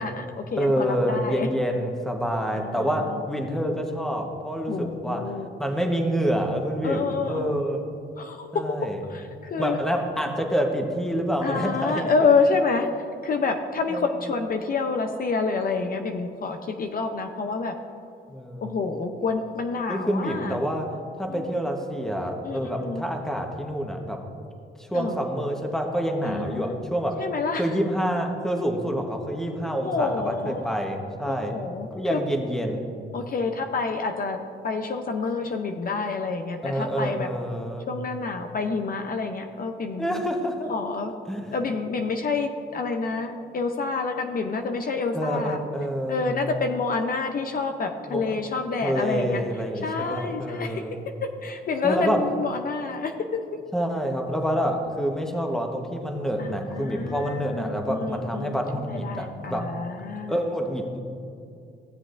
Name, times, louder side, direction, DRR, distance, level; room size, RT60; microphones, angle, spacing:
voice 1, 0.0-1.5 2.5-3.2 4.7-5.5 6.8-7.5 8.2-8.6 9.1-9.8 11.4-12.9 13.2-17.7 18.6-20.6 21.3-21.7 22.4-23.0 24.9-25.2 26.2-26.7 27.2-27.7 29.8-30.7 31.3-32.2 33.1-34.4 34.6-37.3 37.9-40.2 40.7-41.1 41.5-45.6 46.1-49.4 49.8-50.8 51.2-53.4 56.4-58.6 58.9-60.3, left 4 dB, 45° left, 5 dB, 0.7 m, -28 dB
voice 2, 0.6-5.3 5.6-7.8 8.5-9.0 9.5-12.1 13.9-14.1 18.3-18.8 19.9-20.9 21.2-24.2 24.8-27.2 27.6-31.5 31.9-32.9 36.6-37.9 40.0-40.7 41.3-41.5 45.1-46.4 48.1-48.3 48.8-51.0 51.8-52.2 53.7-59.7 60.3-61.0, equal, ahead, 2 dB, 1.1 m, -27 dB
15.5 x 7.6 x 2.5 m, 2.6 s
cardioid pair, 90°, 20 cm